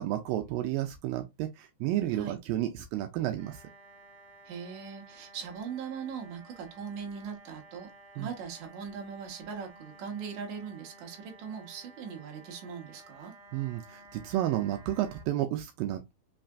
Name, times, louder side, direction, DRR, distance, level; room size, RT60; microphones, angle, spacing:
voice 1, 0.0-3.6 8.2-8.3 13.5-16.1, right 13 dB, 85° right, 2.3 m, -31 dB
sound 1, 3.4-15.2, right 2 dB, 30° right, 2.1 m, -54 dB
voice 2, 4.5-7.9 8.2-13.3, right 6 dB, 60° right, 2.4 m, -40 dB
5.6 x 3.2 x 2.4 m
omnidirectional pair, 4.1 m